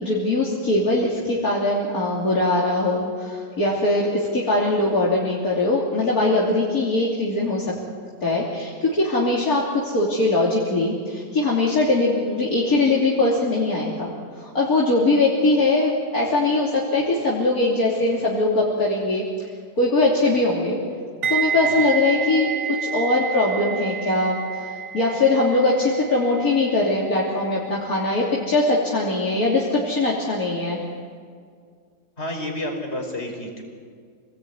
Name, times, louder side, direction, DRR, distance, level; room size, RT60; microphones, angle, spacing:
voice 1, 0.0-7.7 8.2-14.1 14.4-19.2 19.8-20.8 21.3-24.7 24.9-30.8, left 2 dB, 50° left, -4 dB, 3.7 m, -21 dB
sound 1, 21.2-30.2 30.4-30.7, right 7 dB, 50° right, 0.8 m, -30 dB
voice 2, 21.5-21.9 32.2-33.6, left 1 dB, 35° left, 1 dB, 5.2 m, -31 dB
28.0 x 19.5 x 9.7 m, 2.1 s
omnidirectional pair, 2.0 m